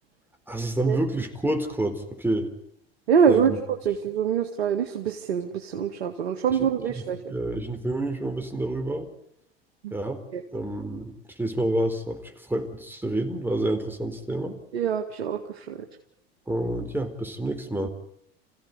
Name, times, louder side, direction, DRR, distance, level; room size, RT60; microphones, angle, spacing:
voice 1, 0.5-2.5 3.3-3.6 6.6-6.7 7.0-9.1 9.9-10.2 10.5-11.1 11.4-14.5 16.5-17.9, right 1 dB, 5° right, 5 dB, 4.3 m, -28 dB
voice 2, 3.1-3.5 3.9-7.2 9.8-9.9 10.3-10.4 14.7-15.9, right 7 dB, 85° right, 4 dB, 2.0 m, -24 dB
28.0 x 16.0 x 9.8 m, 0.77 s
hypercardioid pair, 80°, 31 cm